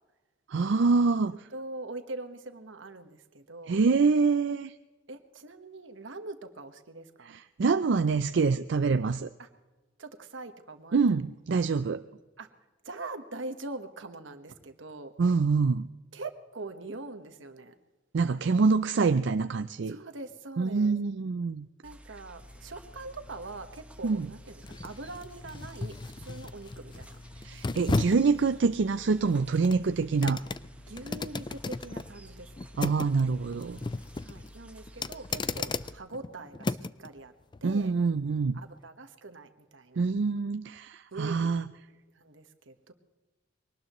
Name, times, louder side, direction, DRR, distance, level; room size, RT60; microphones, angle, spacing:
voice 1, 0.5-1.5 3.7-4.7 7.2-9.3 10.9-12.0 15.2-15.8 18.1-20.0 20.6-21.7 24.0-24.3 27.4-30.4 32.8-33.8 37.6-38.6 40.0-41.7, right 4 dB, 70° right, 10 dB, 0.5 m, -26 dB
voice 2, 1.5-3.8 5.1-7.4 9.4-9.5 10.0-11.1 12.4-12.5 12.8-15.1 16.1-17.7 19.9-21.0 21.8-27.2 30.9-32.5 34.2-37.3 37.6-37.9 38.5-40.0 41.1-41.5 42.2-42.9, right 2 dB, 85° right, 7 dB, 1.3 m, -43 dB
sound 1, 21.8-35.9, equal, 5° right, 1.0 m, -51 dB
sound 2, 22.4-37.1 37.5-37.7, left 3 dB, 25° left, 0.4 m, -36 dB
23.0 x 18.5 x 3.1 m, 1.2 s
head